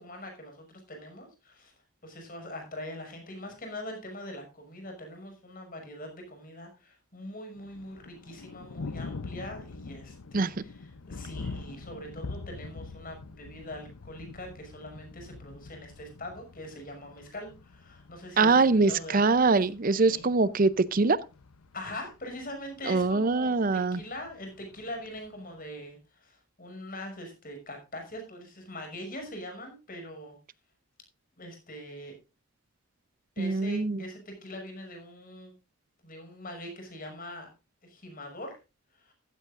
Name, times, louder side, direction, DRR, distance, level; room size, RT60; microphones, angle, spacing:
voice 1, 0.0-1.7 2.0-10.7 11.1-19.3 19.9-20.2 21.7-30.4 31.4-32.2 33.4-35.5 36.0-37.5 37.8-38.6 38.9-39.1, left 1 dB, 40° left, 6.3 m, -42 dB
Thunder, 7.6-25.5, left 3 dB, 85° left, 0.7 m, -45 dB
voice 2, 18.4-21.2 22.9-24.0 33.4-34.0, right 3 dB, 40° right, 0.5 m, -23 dB
14.5 x 14.5 x 2.5 m
head